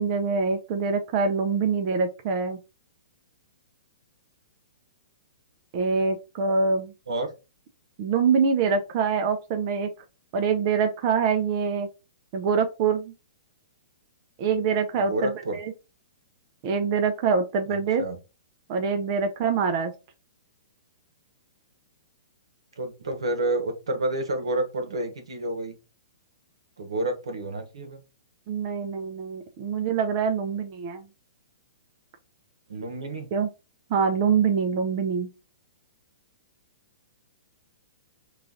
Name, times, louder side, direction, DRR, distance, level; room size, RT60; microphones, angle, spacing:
voice 1, 0.0-2.6 5.7-6.9 8.0-9.9 10.3-11.9 12.3-13.1 14.4-15.7 16.6-18.0 18.7-19.9 28.5-31.1 33.3-33.5 33.9-35.3, right 5 dB, 40° right, 6 dB, 0.5 m, -25 dB
voice 2, 15.0-15.6 17.7-18.2 22.8-25.7 26.8-28.0 32.7-33.3, right 2 dB, 85° right, 6 dB, 1.2 m, -29 dB
3.1 x 2.4 x 3.7 m, 0.28 s
hypercardioid pair, 140°, 3 cm